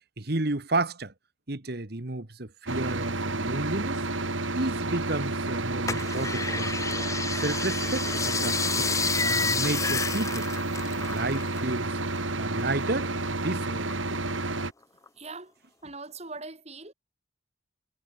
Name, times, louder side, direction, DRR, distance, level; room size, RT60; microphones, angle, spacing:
voice 1, 0.2-1.1 1.5-4.0 4.5-6.8 7.4-8.9 9.2-10.5 10.9-12.0 12.4-14.2, right 2 dB, 55° right, 1.6 m, -32 dB
sound 1, 2.7-14.7, right 2 dB, 85° right, 4.2 m, -30 dB
sound 2, 5.9-11.7 12.0-13.3 13.7-14.6 15.1-15.2, left 5 dB, 15° left, 0.5 m, -30 dB
voice 2, 15.2-15.5 15.8-16.9, right 3 dB, 35° right, 4.4 m, -41 dB
head